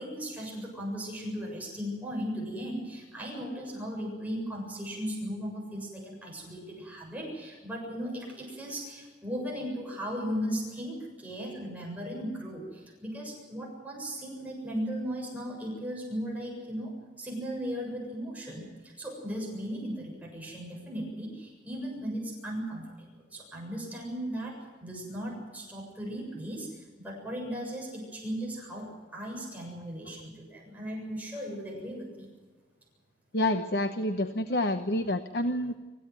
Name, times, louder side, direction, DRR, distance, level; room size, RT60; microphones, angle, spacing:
voice 1, 0.0-16.9 17.2-22.9 23.3-32.3, equal, 10° right, -2 dB, 7.3 m, -37 dB
voice 2, 33.3-35.7, left 1 dB, 65° left, 8 dB, 1.1 m, -28 dB
25.0 x 15.5 x 9.4 m, 1.3 s
head